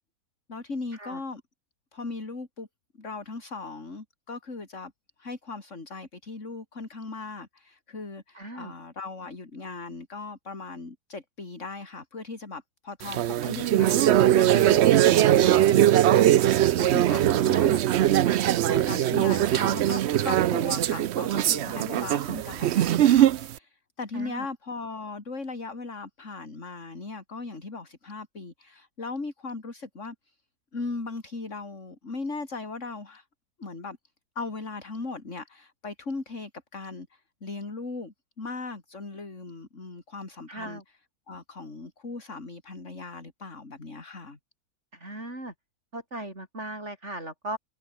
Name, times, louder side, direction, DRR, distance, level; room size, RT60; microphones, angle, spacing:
voice 1, 0.5-1.4 1.9-2.7 3.0-4.9 5.2-17.8 18.6-30.4 30.7-33.2 33.6-34.0 34.4-40.8 41.3-44.4, left 3 dB, 50° left, 3.8 m, -38 dB
voice 2, 8.3-8.7 17.3-17.7 24.1-24.5 40.5-40.8 44.9-45.5 45.9-47.6, right 1 dB, 45° right, 8.1 m, -38 dB
sound 1, 13.0-23.5, right 12 dB, 65° right, 0.7 m, -21 dB
omnidirectional pair, 1.6 m